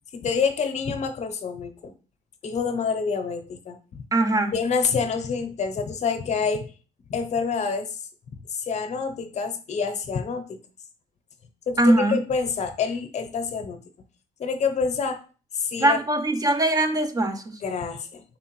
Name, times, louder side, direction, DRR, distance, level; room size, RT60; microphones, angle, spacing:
voice 1, 0.1-1.9 2.4-3.8 4.5-6.7 7.1-8.0 8.5-10.6 11.7-13.8 14.4-15.2 15.5-16.0 17.6-18.2, left 5 dB, 40° left, 0.7 m, -27 dB
voice 2, 4.1-4.6 11.8-12.2 15.8-17.6, right 1 dB, 20° right, 0.4 m, -21 dB
4.3 x 3.4 x 3.0 m
cardioid pair, 110°, 17 cm